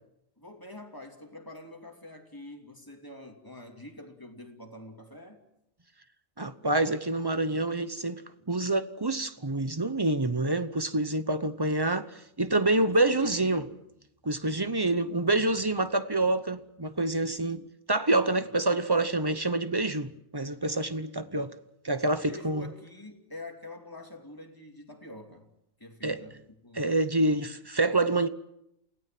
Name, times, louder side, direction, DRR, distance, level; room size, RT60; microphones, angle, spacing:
voice 1, 0.4-5.4 11.2-11.4 12.9-13.8 18.4-18.5 22.2-25.5 25.8-26.4 26.6-27.4, left 1 dB, 15° left, 2.9 m, -46 dB
voice 2, 6.4-13.6 14.2-21.5 21.8-22.7 26.0-26.2 26.7-28.3, right 2 dB, 20° right, 0.7 m, -27 dB
28.5 x 17.5 x 7.6 m
omnidirectional pair, 1.4 m